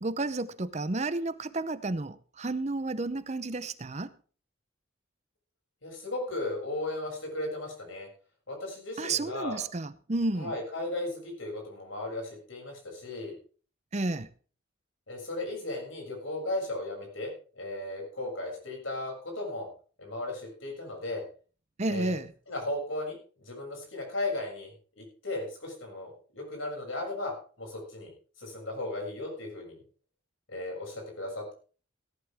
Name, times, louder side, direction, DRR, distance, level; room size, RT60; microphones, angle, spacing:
voice 1, 0.0-4.1 9.0-10.5 13.9-14.3 21.8-22.3, right 2 dB, 35° right, 0.7 m, -31 dB
voice 2, 5.8-8.1 8.5-9.6 10.4-13.4 15.1-19.7 20.0-21.2 21.9-22.1 22.5-24.7 25.0-28.1 28.4-29.8 30.5-31.5, left 2 dB, 80° left, 6.9 m, -36 dB
17.5 x 11.5 x 3.6 m
head